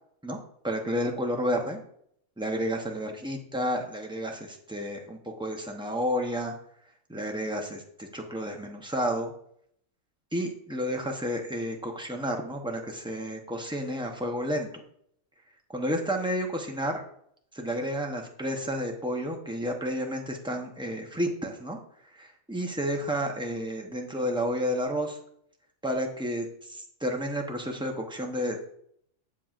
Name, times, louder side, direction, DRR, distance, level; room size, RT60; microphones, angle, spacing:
voice 1, 0.6-1.8 2.4-6.5 7.1-9.3 10.3-14.7 15.7-17.0 17.5-21.8 22.1-25.2 25.8-28.6, equal, 5° right, 1 dB, 0.6 m, -31 dB
7.6 x 7.4 x 2.5 m, 0.68 s
omnidirectional pair, 1.5 m